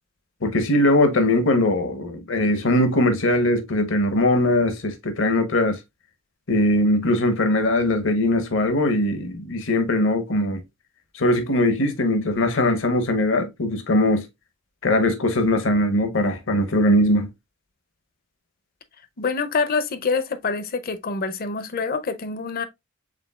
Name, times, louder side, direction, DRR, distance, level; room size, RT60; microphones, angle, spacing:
voice 1, 0.4-5.8 6.5-10.6 11.1-14.3 14.8-17.3, left 1 dB, 70° left, 0.9 m, -20 dB
voice 2, 19.2-22.7, left 4 dB, 50° left, 0.6 m, -26 dB
5.1 x 3.5 x 2.2 m
head